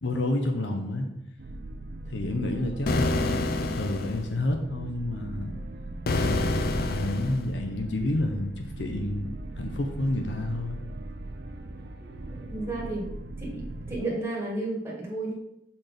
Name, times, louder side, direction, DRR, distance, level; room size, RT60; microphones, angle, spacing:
voice 1, 0.0-1.1 2.1-5.6 6.1-10.8, left 1 dB, 80° left, 4 dB, 0.8 m, -30 dB
sound 1, 1.4-14.0, right 1 dB, 60° right, 0.5 m, -39 dB
sound 2, 2.9-4.3 6.0-7.5, left 2 dB, 55° left, 0.5 m, -27 dB
voice 2, 12.0-13.1 13.4-15.3, right 2 dB, 15° right, -3 dB, 1.8 m, -33 dB
6.0 x 4.3 x 5.1 m, 0.82 s
head